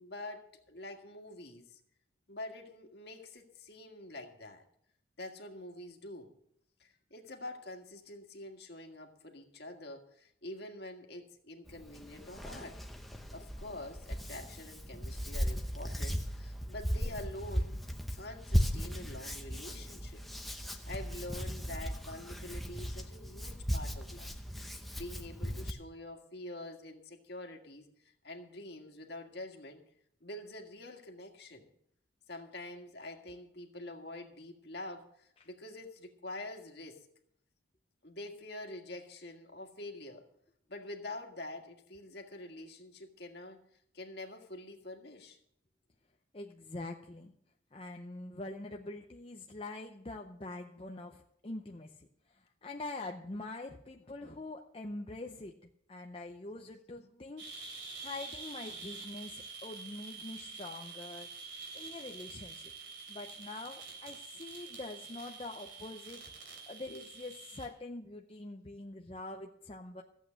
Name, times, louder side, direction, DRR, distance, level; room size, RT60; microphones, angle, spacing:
voice 1, 0.0-1.8 2.3-4.6 5.2-6.3 6.8-12.8 13.3-17.8 18.1-20.2 20.9-24.3 24.9-29.8 30.2-31.7 32.3-37.1 38.0-40.3 40.7-43.6 43.9-45.4 66.9-67.0, left 1 dB, 55° left, 3 dB, 1.8 m, -46 dB
Hands, 11.7-25.7, equal, ahead, 0.9 m, -37 dB
voice 2, 46.3-47.3 47.7-52.1 52.6-55.5 55.9-61.3 61.7-62.7 63.1-66.2 66.7-70.0, left 2 dB, 30° left, 2 dB, 0.6 m, -44 dB
sound 1, 57.4-67.7, right 4 dB, 65° right, 3.3 m, -47 dB
14.5 x 8.2 x 6.4 m, 0.71 s
head